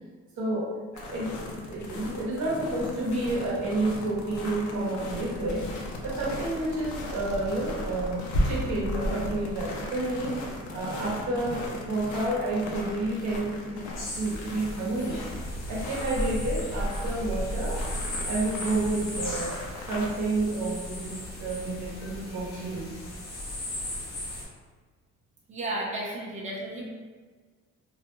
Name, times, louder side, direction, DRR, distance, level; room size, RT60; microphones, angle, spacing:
voice 1, 0.4-1.4 1.7-5.7 6.0-10.4 10.7-13.9 14.1-15.3 15.7-17.9 18.3-22.9, right 2 dB, 70° right, -5 dB, 0.9 m, -30 dB
sound 1, 0.9-20.1, left 1 dB, 80° left, 0.6 m, -35 dB
sound 2, 14.0-24.4, left 1 dB, 60° left, 0.9 m, -38 dB
voice 2, 25.5-26.9, right 1 dB, 25° right, -4 dB, 0.6 m, -33 dB
2.4 x 2.1 x 2.9 m, 1.5 s
cardioid pair, 90°, 30 cm